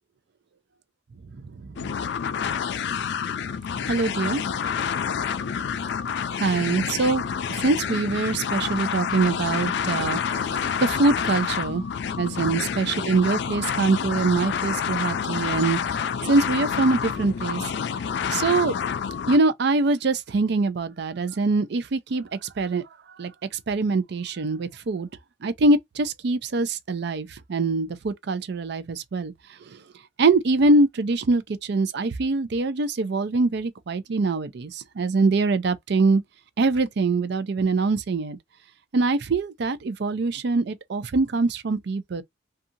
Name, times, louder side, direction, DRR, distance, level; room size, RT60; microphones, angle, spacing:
sound 1, 1.8-19.4, left 7 dB, 65° left, 0.3 m, -28 dB
voice 1, 3.9-4.4 6.3-7.2 7.6-11.8 12.2-16.0 16.2-17.6 18.3-18.8 19.3-22.3 22.6-22.8 23.2-23.3 23.7-25.1 25.4-29.3 30.2-36.2 36.6-38.4 38.9-42.2, right 3 dB, 65° right, 0.5 m, -23 dB
2.7 x 2.3 x 2.5 m
head